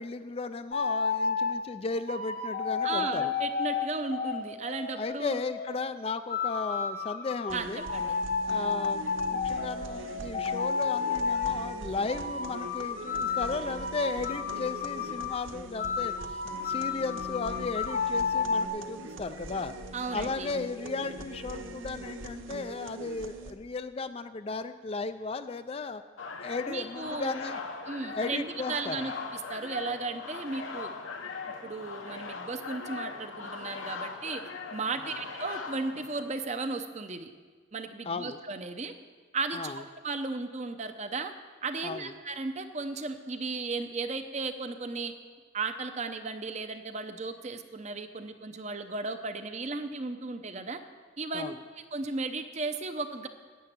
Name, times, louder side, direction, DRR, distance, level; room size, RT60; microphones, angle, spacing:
voice 1, 0.0-3.3 4.9-7.9 8.5-16.4 16.6-19.7 20.1-26.0 26.4-27.6 28.1-29.1 38.0-38.4 39.5-39.8 41.8-42.1 51.3-51.6, left 4 dB, 30° left, 11 dB, 0.4 m, -35 dB
sound 1, 0.7-1.6 2.1-5.8 6.3-11.6 12.1-15.4 15.8-18.7, left 5 dB, 45° left, 0.9 m, -32 dB
voice 2, 2.8-5.4 7.5-8.2 19.9-20.5 26.7-27.3 27.9-30.9 31.5-37.3 37.7-38.9 39.3-41.3 41.6-45.1 45.5-50.8 51.2-51.5 51.9-53.3, right 3 dB, 35° right, 8 dB, 0.7 m, -35 dB
sound 2, 7.5-23.5, right 1 dB, 85° right, 0.9 m, -42 dB
sound 3, 26.2-36.6, left 4 dB, 85° left, 1.1 m, -40 dB
10.0 x 7.8 x 9.2 m, 1.5 s
head